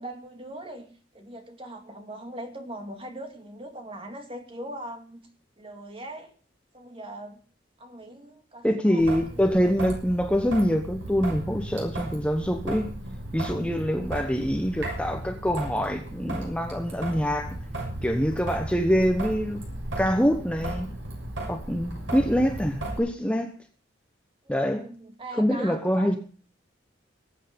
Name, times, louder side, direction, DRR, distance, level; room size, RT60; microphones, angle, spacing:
voice 1, 0.0-5.3 5.6-6.3 6.7-7.4 7.8-9.7 24.4-26.2, right 1 dB, 30° right, 5 dB, 2.4 m, -41 dB
voice 2, 8.6-12.9 13.3-17.6 18.0-19.6 20.0-20.9 21.5-23.5 24.5-24.9 25.4-26.2, equal, 5° left, 5 dB, 1.1 m, -25 dB
Traffic noise roadway noise / Drip / Trickle dribble, 9.0-23.0, right 1 dB, 85° right, 6.8 m, -35 dB
20.5 x 8.4 x 5.2 m, 0.42 s
head